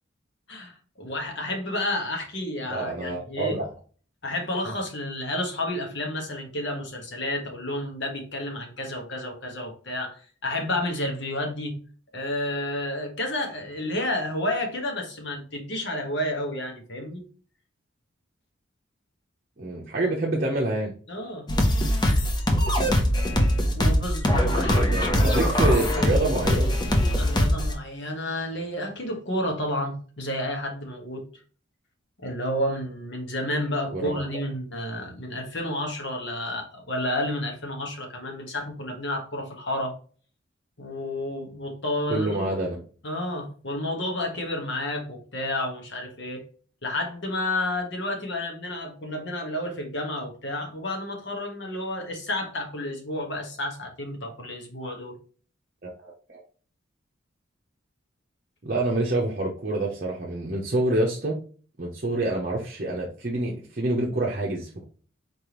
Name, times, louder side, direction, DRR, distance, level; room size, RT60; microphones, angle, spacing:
voice 1, 0.5-3.6 4.2-11.7 12.1-17.2 21.1-21.5 23.7-24.8 27.2-31.3 32.2-39.9 40.8-42.5 43.0-46.4 46.8-55.2, left 1 dB, 60° left, 1.3 m, -31 dB
voice 2, 2.7-3.7 19.6-20.9 24.4-26.8 33.9-34.2 42.1-42.8 55.8-56.4 58.6-61.3 61.8-64.8, right 2 dB, 45° right, 0.7 m, -27 dB
sound 1, 21.5-27.7, equal, 20° left, 0.6 m, -22 dB
4.4 x 3.4 x 3.0 m
head